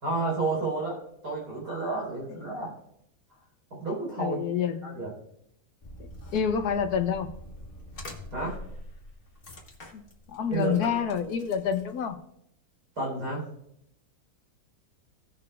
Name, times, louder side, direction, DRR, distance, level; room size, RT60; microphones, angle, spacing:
voice 1, 0.0-2.7 3.7-4.4 4.8-5.1 8.3-8.6 10.5-10.9 13.0-13.5, right 3 dB, 75° right, -5 dB, 4.9 m, -31 dB
voice 2, 4.2-5.0 6.0-7.3 9.9-10.0 10.3-12.2, left 7 dB, 70° left, 8 dB, 1.3 m, -28 dB
sound 1, 5.8-12.1, left 1 dB, 35° left, 1.6 m, -45 dB
17.5 x 6.8 x 2.4 m, 0.75 s
omnidirectional pair, 1.7 m